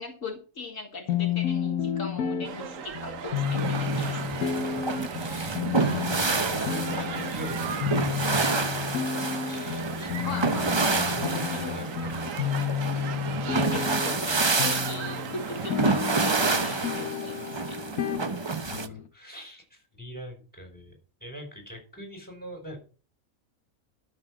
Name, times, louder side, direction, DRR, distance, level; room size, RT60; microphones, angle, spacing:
voice 1, 0.0-4.3 9.5-10.9 11.6-11.7 12.9-13.0 13.5-17.8, left 3 dB, 60° left, 2 dB, 1.9 m, -39 dB
sound 1, 1.1-19.1, left 8 dB, 80° left, 1.4 m, -32 dB
sound 2, 2.4-16.6, right 8 dB, 65° right, 1.2 m, -38 dB
sound 3, 3.4-18.9, right 4 dB, 25° right, 0.6 m, -29 dB
voice 2, 4.3-8.9 9.4-10.6 10.9-12.9 18.6-22.8, equal, 5° left, 4 dB, 4.8 m, -43 dB
12.5 x 6.4 x 6.1 m, 0.37 s
omnidirectional pair, 1.5 m